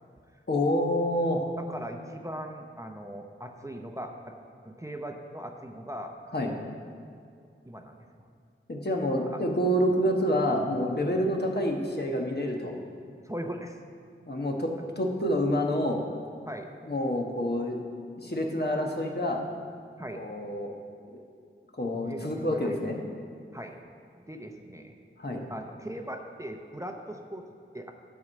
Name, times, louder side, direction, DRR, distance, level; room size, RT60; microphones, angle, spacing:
voice 1, 0.5-1.5 6.3-6.5 8.7-12.7 14.3-14.7 15.0-16.0 16.8-17.8 18.2-19.4 20.1-20.7 21.1-21.2 21.8-23.0 25.2-25.4, equal, 50° left, 1 dB, 1.3 m, -27 dB
voice 2, 1.6-4.3 4.6-6.2 7.6-8.3 9.3-9.4 9.8-9.9 11.1-11.3 13.2-13.8 14.8-14.9 16.4-16.7 20.0-20.3 21.9-22.7 23.5-23.8 24.1-24.9 25.5-27.5 27.7-27.9, right 1 dB, 15° right, 3 dB, 0.7 m, -40 dB
11.0 x 4.7 x 7.4 m, 2.3 s
wide cardioid pair, 50°, 21 cm